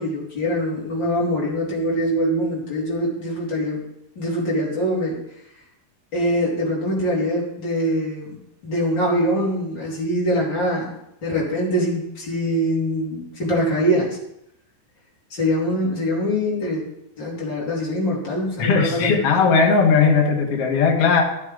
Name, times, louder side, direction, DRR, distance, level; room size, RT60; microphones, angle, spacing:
voice 1, 0.0-3.8 4.1-5.2 6.1-10.9 11.2-14.2 15.3-16.8 17.2-19.3, equal, 35° left, -5 dB, 3.1 m, -23 dB
voice 2, 18.6-21.2, left 5 dB, 55° left, 1 dB, 1.9 m, -17 dB
12.5 x 8.3 x 3.8 m, 0.82 s
omnidirectional pair, 4.3 m